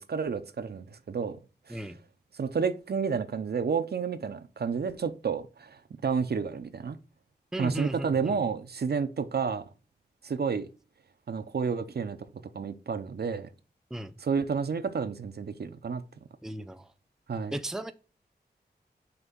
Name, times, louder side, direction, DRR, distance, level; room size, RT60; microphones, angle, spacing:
voice 1, 0.0-1.4 1.7-1.8 2.4-7.0 7.6-9.6 10.2-10.7 11.3-12.2 12.5-13.5 14.2-16.0 17.3-17.5, right 5 dB, 65° right, 0.6 m, -30 dB
voice 2, 7.5-8.4 13.9-14.1 16.4-16.9 17.5-17.9, right 1 dB, 5° right, 0.5 m, -35 dB
5.9 x 3.3 x 5.3 m
wide cardioid pair, 80°, 18 cm